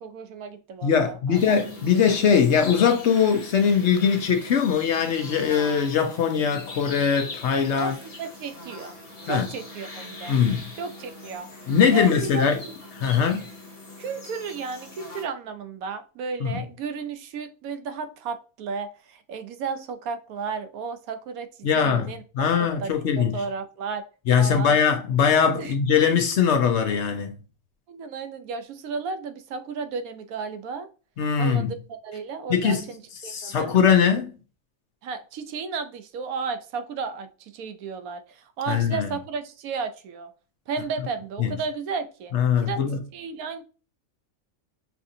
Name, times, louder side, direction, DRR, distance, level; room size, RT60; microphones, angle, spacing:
voice 1, 0.0-1.4 7.8-9.0 9.2-10.4 10.8-12.7 14.0-22.2 22.6-24.0 24.4-24.8 25.6-25.8 27.9-30.9 31.4-33.8 35.0-40.3 40.7-42.8 43.1-43.6, right 5 dB, 85° right, 1.1 m, -34 dB
voice 2, 0.8-7.9 9.3-9.4 10.3-10.7 11.7-12.6 13.0-13.5 16.4-16.6 21.6-23.4 24.3-27.4 31.2-31.7 32.5-32.9 33.3-34.3 38.7-39.1 41.4-41.5 42.3-43.0, left 7 dB, 60° left, 0.9 m, -21 dB
sound 1, 1.3-15.2, left 2 dB, 30° left, 0.8 m, -41 dB
5.8 x 2.6 x 2.6 m
omnidirectional pair, 1.5 m